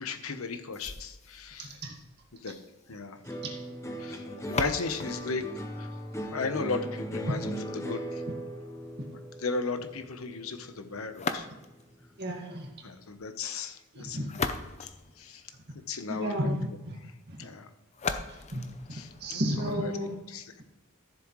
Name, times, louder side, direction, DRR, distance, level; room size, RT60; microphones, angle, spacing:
voice 1, 0.0-1.7 2.3-2.5 2.9-3.2 4.0-5.5 5.8-5.9 6.3-8.2 9.4-11.5 12.8-14.5 14.8-15.5 15.9-16.5 17.4-17.7 18.9-19.9 20.3-20.6, left 4 dB, 80° left, 8 dB, 1.0 m, -36 dB
sound 1, 0.7-6.7 11.1-12.0 14.0-15.9 17.9-19.9, left 4 dB, 30° left, 0.6 m, -39 dB
voice 2, 1.6-1.9 3.4-3.5 7.3-7.4 12.2-12.7 13.9-14.3 16.1-17.0 17.3-17.5 18.5-18.6 18.9-20.2, equal, 50° right, 1 dB, 2.0 m, -32 dB
sound 2, 3.2-11.7 12.0-12.7, equal, 15° left, 1.0 m, -39 dB
13.5 x 7.5 x 3.2 m, 1.0 s
head